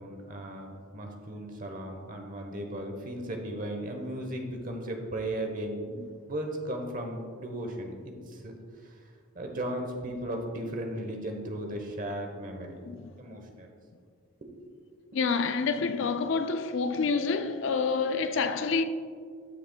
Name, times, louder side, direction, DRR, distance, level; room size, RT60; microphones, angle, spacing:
voice 1, 0.0-5.8 6.3-12.8 13.2-13.7 14.4-14.5 14.9-15.0, right 1 dB, 40° right, 1.0 m, -36 dB
voice 2, 15.1-18.8, left 4 dB, 60° left, 0.4 m, -28 dB
13.0 x 6.6 x 2.3 m
head